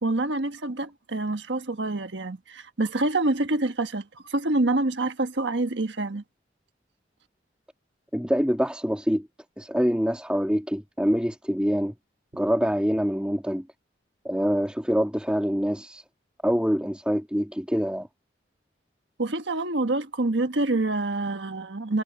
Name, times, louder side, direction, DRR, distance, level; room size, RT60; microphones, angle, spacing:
voice 1, 0.0-6.2 19.2-22.0, right 2 dB, 85° right, 1.4 m, -26 dB
voice 2, 8.1-9.3 9.6-11.9 12.3-13.7 14.2-16.0 16.4-18.1, equal, 5° right, 2.3 m, -25 dB
head